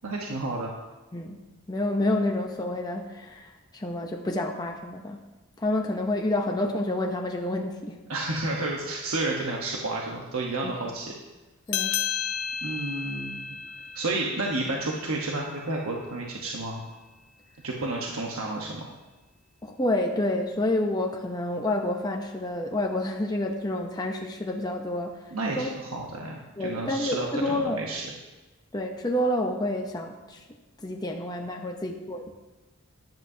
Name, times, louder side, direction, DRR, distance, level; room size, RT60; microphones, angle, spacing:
voice 1, 0.0-0.7 8.1-11.1 12.6-13.6 13.9-16.8 17.6-18.9 25.3-28.0, right 2 dB, 70° right, -1 dB, 1.1 m, -31 dB
voice 2, 1.7-5.2 5.6-8.0 10.6-10.7 11.7-12.0 19.6-25.2 25.6-25.7 26.6-27.8 28.7-30.4 30.8-32.2, left 1 dB, 20° left, 2 dB, 0.7 m, -29 dB
sound 1, 11.7-16.6, left 8 dB, 85° left, 0.6 m, -34 dB
13.5 x 10.5 x 2.8 m, 1.1 s
head